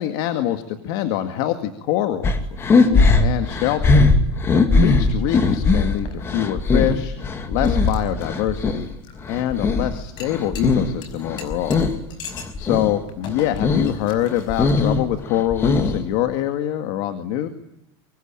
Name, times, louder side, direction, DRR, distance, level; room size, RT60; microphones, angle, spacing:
voice 1, 0.0-2.4 2.7-4.1 4.5-7.1 7.5-8.9 9.3-11.8 12.1-12.2 12.6-17.5, left 12 dB, 50° left, 8 dB, 2.0 m, -24 dB
sound 1, 2.2-8.8 9.2-11.0 11.2-12.0 12.3-12.9 13.3-13.9 14.3-16.1, left 3 dB, 20° left, 2.2 m, -19 dB
sound 2, 5.4-15.1, left 5 dB, 35° left, 5.3 m, -43 dB
25.0 x 24.5 x 8.9 m, 0.83 s
supercardioid pair, 175°, 14 cm